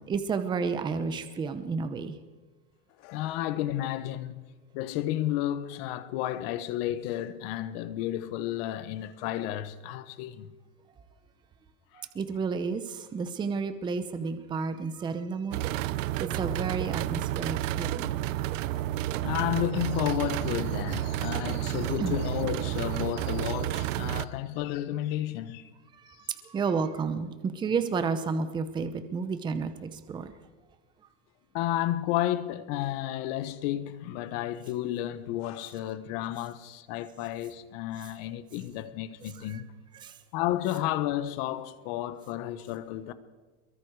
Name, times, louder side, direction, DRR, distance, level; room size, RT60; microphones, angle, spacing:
voice 1, 0.0-2.2 11.9-15.7 16.2-18.2 22.0-22.2 25.9-30.3 39.4-39.6 39.9-40.2, right 5 dB, 10° right, 0.8 m, -31 dB
voice 2, 3.0-10.5 11.9-12.1 19.2-25.7 31.5-39.7 40.3-43.1, left 13 dB, 45° left, 1.2 m, -32 dB
sound 1, 15.5-24.3, right 14 dB, 70° right, 0.8 m, -31 dB
23.5 x 23.0 x 4.9 m
supercardioid pair, 165°, 40 cm